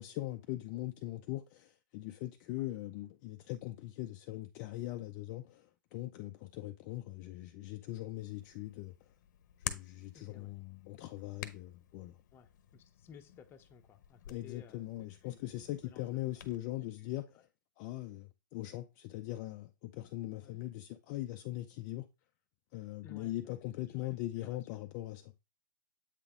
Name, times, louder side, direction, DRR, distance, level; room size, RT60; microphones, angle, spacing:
voice 1, 0.0-8.9 9.6-12.2 14.3-17.3 17.8-22.1 22.7-25.3, left 16 dB, 35° left, 0.5 m, -41 dB
Hands, 8.2-16.6, left 9 dB, 60° left, 0.9 m, -49 dB
voice 2, 10.1-10.5 12.3-15.4 15.8-16.0 16.6-17.4 20.4-20.6 23.0-23.4 23.8-24.7, left 7 dB, 20° left, 0.9 m, -58 dB
8.1 x 4.0 x 3.7 m
hypercardioid pair, 140°, 11 cm